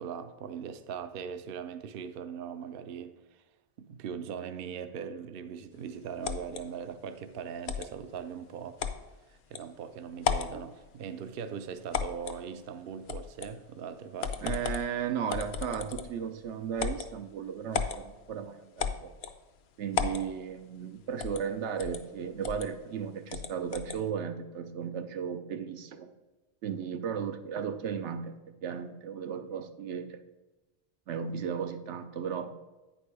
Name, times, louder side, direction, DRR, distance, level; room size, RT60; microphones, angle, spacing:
voice 1, 0.0-3.4 3.8-8.8 9.3-14.6, right 7 dB, 60° right, 11 dB, 0.7 m, -40 dB
sound 1, 6.2-6.6 7.7-7.9 8.8-9.0 9.5-9.6 10.2-10.6 11.9-12.4 13.1-13.5 14.2-14.9 15.3-16.2 16.8-17.1 17.7-18.0 18.8-19.4 19.9-20.3 21.2-21.5 21.8-22.0 22.4-22.7 23.3-24.0, left 6 dB, 70° left, 0.8 m, -33 dB
voice 2, 14.4-19.1 19.8-26.1 26.6-28.3 28.6-30.2 31.1-32.5, right 7 dB, 85° right, 8 dB, 1.0 m, -35 dB
8.9 x 5.3 x 4.8 m, 1.1 s
omnidirectional pair, 1.1 m